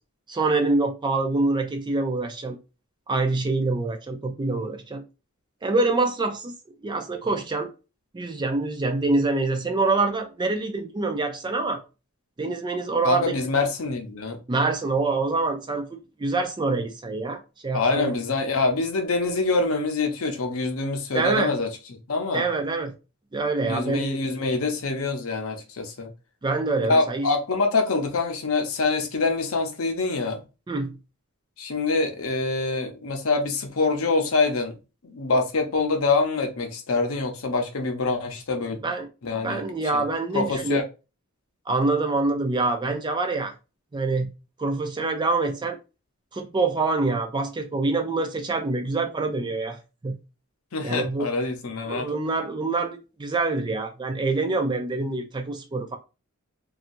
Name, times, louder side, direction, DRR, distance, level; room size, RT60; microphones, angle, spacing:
voice 1, 0.3-2.6 3.1-5.0 5.6-6.5 6.8-7.7 8.1-11.8 12.4-13.4 14.5-15.9 16.2-18.1 21.1-21.5 22.3-22.9 23.3-24.1 26.4-27.3 30.7-30.9 38.8-39.1 39.4-40.8 41.7-43.5 43.9-44.3 44.6-45.8 46.3-50.2 50.8-51.3 51.9-56.0, right 3 dB, 20° right, 0.4 m, -25 dB
voice 2, 13.0-14.4 17.7-21.7 22.1-22.5 23.6-26.1 26.8-30.4 31.6-34.8 35.0-38.8 39.2-39.6 39.9-40.0 40.3-40.8 50.7-52.1, left 3 dB, 70° left, 0.7 m, -25 dB
2.7 x 2.3 x 2.6 m
head